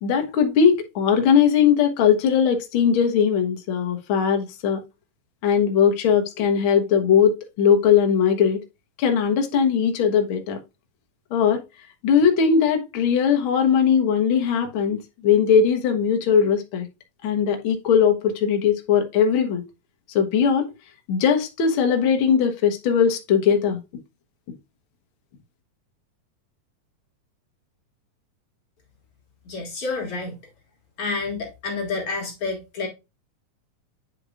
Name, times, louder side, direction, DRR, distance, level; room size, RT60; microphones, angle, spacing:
voice 1, 0.0-4.8 5.4-8.6 9.0-10.6 11.3-11.6 12.0-16.9 17.2-19.6 20.1-20.7 21.1-23.8, left 7 dB, 70° left, 1.2 m, -19 dB
voice 2, 29.4-30.4 31.0-32.9, left 3 dB, 50° left, 2.3 m, -29 dB
9.3 x 5.0 x 2.4 m
omnidirectional pair, 3.9 m